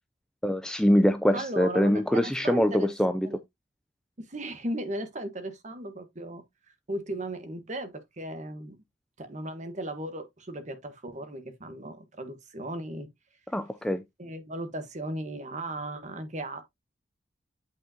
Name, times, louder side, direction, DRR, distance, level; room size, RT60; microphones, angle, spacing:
voice 1, 0.4-3.3 13.5-14.0, equal, 5° left, 0.4 m, -24 dB
voice 2, 1.3-2.9 3.2-3.4 4.2-6.4 6.9-8.8 9.2-13.1 14.2-16.6, right 1 dB, 40° right, 1.3 m, -36 dB
8.4 x 4.7 x 2.8 m
head